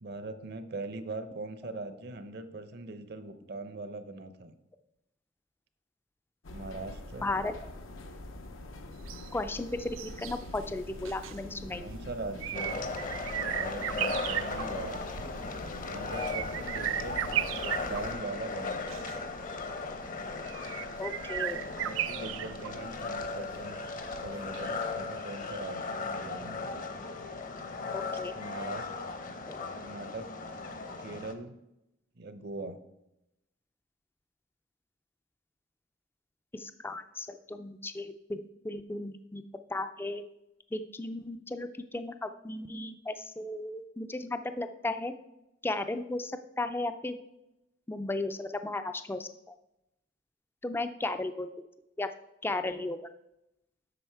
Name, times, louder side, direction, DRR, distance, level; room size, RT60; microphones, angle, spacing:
voice 1, 0.0-4.5 6.5-7.3 11.8-12.9 13.4-15.1 15.9-19.0 21.8-23.8 24.2-26.6 28.4-29.0 29.7-30.6 31.0-31.5 32.2-32.8, right 2 dB, 55° right, 10 dB, 0.7 m, -41 dB
sound 1, 6.4-18.1, left 2 dB, 85° left, 0.8 m, -45 dB
voice 2, 7.2-7.5 9.3-11.9 13.0-13.1 19.1-19.2 21.0-21.6 27.9-28.4 29.5-29.7 36.5-38.4 38.6-39.4 39.7-40.2 40.7-45.1 45.6-47.2 47.9-49.5 50.6-51.5 52.0-52.1 52.4-53.0, left 2 dB, 10° left, 10 dB, 0.3 m, -35 dB
sound 2, 8.9-24.9 25.2-25.3, right 11 dB, 85° right, 0.3 m, -37 dB
sound 3, 12.5-31.3, left 3 dB, 40° left, 0.7 m, -37 dB
7.8 x 6.3 x 4.5 m, 0.88 s
head